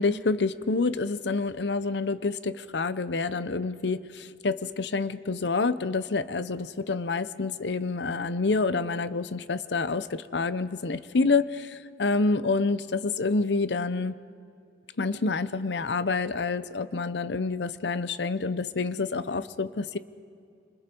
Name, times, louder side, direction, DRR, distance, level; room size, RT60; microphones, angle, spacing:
voice 1, 0.0-14.1 15.0-20.0, left 3 dB, 80° left, 15 dB, 0.7 m, -28 dB
27.5 x 25.5 x 4.5 m, 2.5 s
head